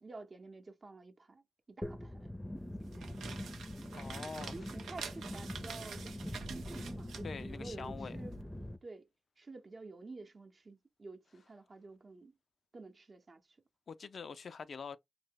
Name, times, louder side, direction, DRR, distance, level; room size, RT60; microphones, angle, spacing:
voice 1, 0.0-2.3 2.8-3.4 4.5-8.4 8.8-9.1 9.4-12.3 12.7-13.4, right 3 dB, 50° right, 0.7 m, -50 dB
sound 1, 1.8-8.8, left 1 dB, 10° left, 0.5 m, -43 dB
sound 2, 2.8-8.4, right 6 dB, 85° right, 0.4 m, -48 dB
voice 2, 3.9-4.7 7.2-8.2 13.9-15.0, left 5 dB, 65° left, 0.3 m, -45 dB
2.8 x 2.1 x 3.5 m
supercardioid pair, 45°, 0 cm